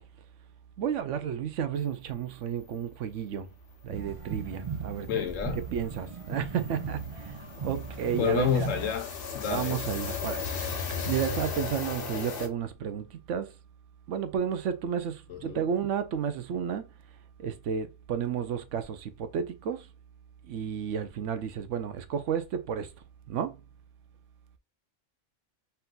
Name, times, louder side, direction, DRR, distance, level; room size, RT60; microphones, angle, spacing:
voice 1, 0.8-3.5 3.8-5.2 5.5-8.7 9.4-10.5 11.1-13.5 14.1-16.9 17.4-19.9 20.4-22.9 23.3-23.6, right 8 dB, 75° right, 1.0 m, -32 dB
sound 1, 3.9-9.0, right 5 dB, 30° right, 0.7 m, -38 dB
sound 2, 4.1-4.2 4.4-4.6 4.9-12.5, left 5 dB, 50° left, 1.0 m, -36 dB
voice 2, 5.1-5.6 8.2-9.1 9.3-9.8 15.3-15.6, left 10 dB, 80° left, 1.0 m, -29 dB
4.4 x 2.7 x 3.8 m
omnidirectional pair, 1.3 m